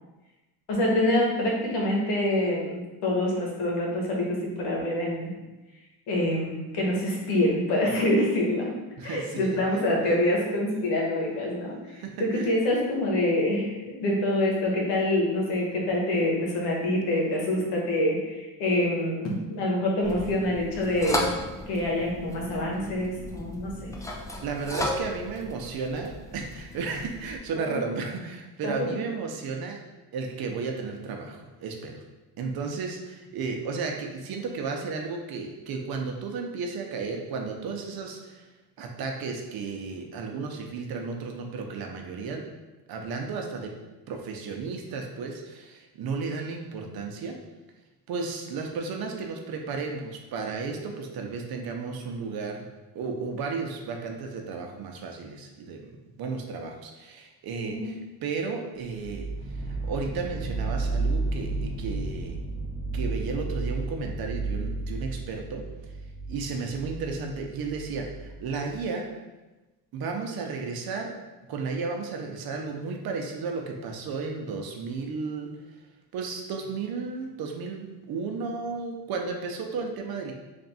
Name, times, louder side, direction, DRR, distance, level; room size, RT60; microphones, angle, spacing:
voice 1, 0.7-5.3 6.1-8.7 9.0-11.8 12.2-21.3 21.7-23.9 27.7-27.8 28.6-28.9 57.6-57.9, left 1 dB, 90° left, -2 dB, 1.2 m, -26 dB
voice 2, 9.0-9.6 11.9-12.5 24.4-29.8 30.1-32.0 32.4-38.5 38.8-42.4 42.9-43.7 44.1-47.4 48.1-52.7 52.9-55.9 56.2-59.3 59.6-62.4 62.9-65.6 66.3-69.1 69.9-71.1 71.5-75.5 76.1-80.3, right 4 dB, 65° right, 2 dB, 0.7 m, -33 dB
sound 1, 20.0-27.4, left 1 dB, 10° left, 0.4 m, -35 dB
sound 2, 59.0-68.8, right 3 dB, 15° right, 0.8 m, -32 dB
3.4 x 2.6 x 4.1 m, 1.1 s
cardioid pair, 105°, 40 cm